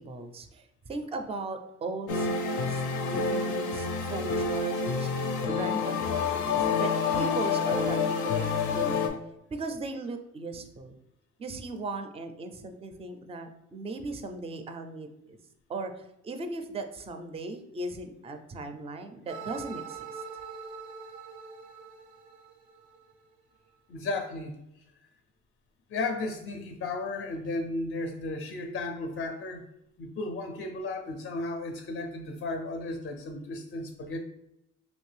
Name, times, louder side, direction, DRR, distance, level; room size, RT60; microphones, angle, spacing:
voice 1, 0.0-5.1 5.5-9.1 9.5-11.0 11.4-15.4 15.7-20.2, right 2 dB, 20° right, 7 dB, 0.4 m, -38 dB
sound 1, 2.1-9.1, left 5 dB, 90° left, 0.5 m, -28 dB
sound 2, 19.3-23.3, right 5 dB, 85° right, 0.5 m, -43 dB
voice 2, 23.9-24.8 25.9-29.6 30.0-34.2, left 2 dB, 40° left, 5 dB, 0.4 m, -34 dB
3.0 x 2.6 x 3.2 m, 0.84 s
cardioid pair, 90°, 30 cm